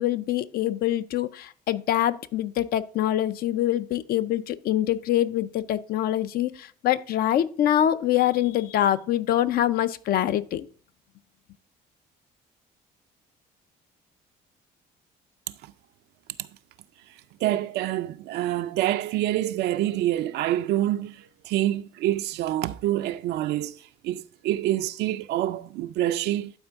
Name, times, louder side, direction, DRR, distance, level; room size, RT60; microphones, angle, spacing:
voice 1, 0.0-10.7, left 12 dB, 65° left, 0.5 m, -24 dB
voice 2, 17.1-26.6, right 13 dB, 80° right, 0.4 m, -27 dB
11.5 x 4.4 x 3.5 m
cardioid pair, 110°, 17 cm